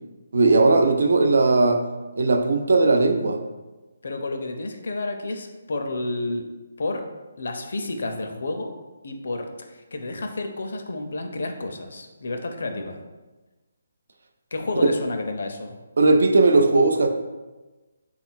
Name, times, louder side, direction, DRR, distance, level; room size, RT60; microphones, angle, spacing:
voice 1, 0.3-1.8 2.2-3.4 14.8-14.9 16.0-17.1, right 3 dB, 55° right, 5 dB, 0.4 m, -18 dB
voice 2, 4.0-6.5 6.8-7.0 7.4-8.7 9.0-13.0 14.5-15.7, left 2 dB, 55° left, 5 dB, 0.5 m, -30 dB
3.5 x 2.4 x 4.3 m, 1.2 s
hypercardioid pair, 175°, 0 cm